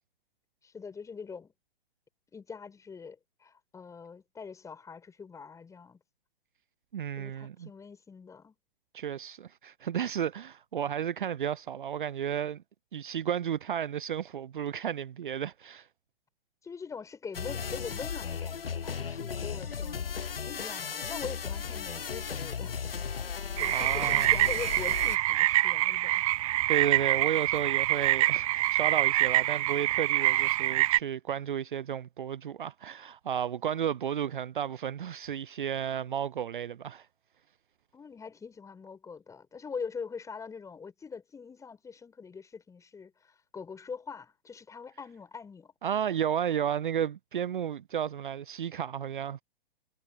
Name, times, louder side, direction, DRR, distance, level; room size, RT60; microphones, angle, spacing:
voice 1, 0.6-1.5 2.3-6.0 7.2-8.6 16.6-20.2 20.4-22.8 23.6-26.2 37.9-45.7, left 5 dB, 10° left, 7.0 m, -43 dB
voice 2, 6.9-7.7 8.9-12.6 12.9-15.9 23.7-24.3 26.7-37.1 45.8-49.4, right 9 dB, 60° right, 0.7 m, -33 dB
sound 1, 17.3-25.2, left 6 dB, 75° left, 0.8 m, -36 dB
Many Frogs at Night in Marsh, 23.6-31.0, right 16 dB, 35° right, 0.9 m, -26 dB
figure-of-eight pair, 115°, 29 cm